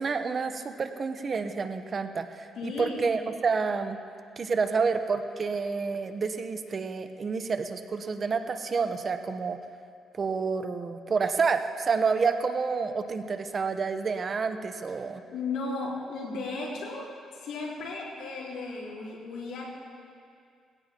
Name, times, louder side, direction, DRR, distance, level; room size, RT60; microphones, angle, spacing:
voice 1, 0.0-4.0 4.4-9.6 10.1-15.2, right 5 dB, 40° right, 8 dB, 0.9 m, -29 dB
voice 2, 2.5-3.0 15.3-19.7, left 3 dB, 85° left, -5 dB, 4.2 m, -35 dB
20.0 x 17.0 x 3.0 m, 2.3 s
cardioid pair, 90°, 0 cm